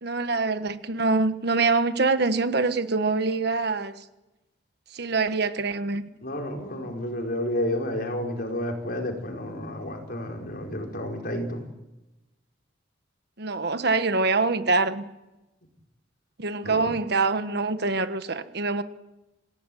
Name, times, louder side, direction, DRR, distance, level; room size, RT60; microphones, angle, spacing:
voice 1, 0.0-3.9 4.9-6.0 13.4-15.0 16.4-18.8, right 3 dB, 60° right, 1.4 m, -25 dB
voice 2, 6.2-11.6 16.6-16.8, left 1 dB, 50° left, 4.7 m, -31 dB
26.0 x 17.0 x 9.2 m
head